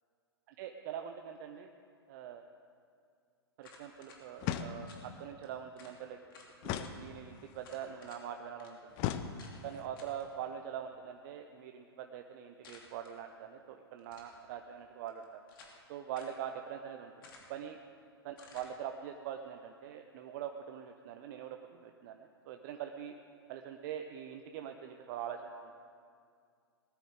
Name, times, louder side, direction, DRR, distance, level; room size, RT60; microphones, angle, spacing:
voice 1, 0.5-1.7 2.1-2.5 3.6-6.2 6.6-8.9 9.6-15.3 15.9-17.8 18.2-23.2 23.5-25.7, right 9 dB, 45° right, 5 dB, 0.7 m, -43 dB
sound 1, 3.6-4.2 4.9-5.1 5.4-5.5 5.8-6.0 6.3-6.9 7.6-8.2 8.6-8.7 9.4-9.6 10.0-10.2 12.6-13.1 14.0-14.4 15.1-15.8 16.1-16.4 17.2-17.6 18.4-18.7, left 4 dB, 60° left, 2.6 m, -56 dB
sound 2, 4.4-5.2 6.6-7.6 9.0-9.8, left 10 dB, 35° left, 0.7 m, -38 dB
19.0 x 13.0 x 3.7 m, 2.3 s
figure-of-eight pair, 115°, 13 cm